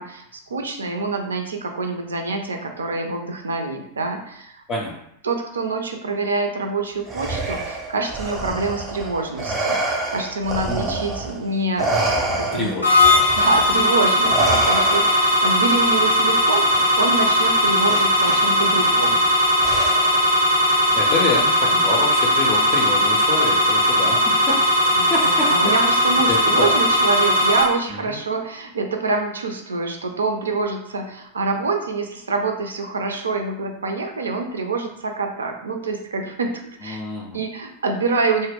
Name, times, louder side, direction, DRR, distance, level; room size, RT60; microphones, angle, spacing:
voice 1, 0.0-4.6 5.2-12.7 13.3-19.4 25.0-37.0 37.3-38.5, right 3 dB, 70° right, 4 dB, 0.4 m, -26 dB
Respiratory sounds, 7.1-11.4 11.8-15.4 16.7-16.9 17.8-18.4 19.6-20.3, right 2 dB, 20° right, 0.5 m, -27 dB
voice 2, 10.7-11.0 12.5-12.9 20.9-25.5 26.3-26.7 27.9-28.2 36.8-37.4, left 3 dB, 30° left, -2 dB, 0.4 m, -27 dB
sound 1, 12.8-27.6, left 1 dB, 80° left, 0.6 m, -18 dB
2.2 x 2.0 x 3.4 m, 0.74 s
figure-of-eight pair, 90°, 0 cm